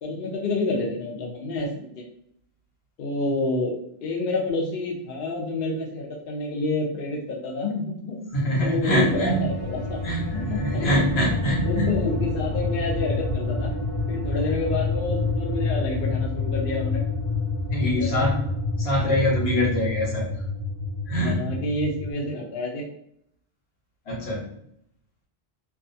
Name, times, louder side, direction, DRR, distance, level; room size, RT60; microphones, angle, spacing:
voice 1, 0.0-2.0 3.0-3.7 4.0-10.0 10.3-11.0 11.6-13.7 14.1-17.0 17.8-18.3 19.0-19.3 21.2-22.8, left 2 dB, 65° left, -1 dB, 0.7 m, -29 dB
voice 2, 8.3-9.4 10.0-12.0 17.7-18.5 18.8-20.3 21.1-21.4 24.1-24.5, equal, 90° left, -3 dB, 1.2 m, -24 dB
sound 1, 8.9-22.1, left 3 dB, 20° right, 0.5 m, -28 dB
2.5 x 2.3 x 2.6 m, 0.72 s
omnidirectional pair, 1.0 m